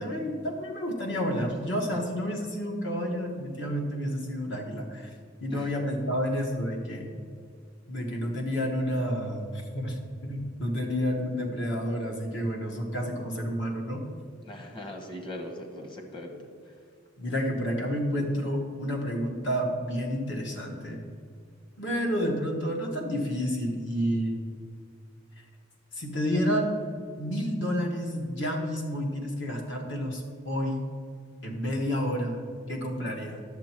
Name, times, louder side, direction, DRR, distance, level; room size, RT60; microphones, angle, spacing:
voice 1, 0.0-5.1 5.4-7.1 7.9-14.0 17.2-21.0 21.8-24.4 25.9-26.8 27.2-30.9 31.4-32.4 32.7-33.4, equal, 65° left, 1 dB, 1.5 m, -30 dB
voice 2, 14.4-16.4 16.6-16.7, left 1 dB, 25° left, 3 dB, 1.1 m, -40 dB
10.5 x 7.1 x 4.5 m, 2.2 s
head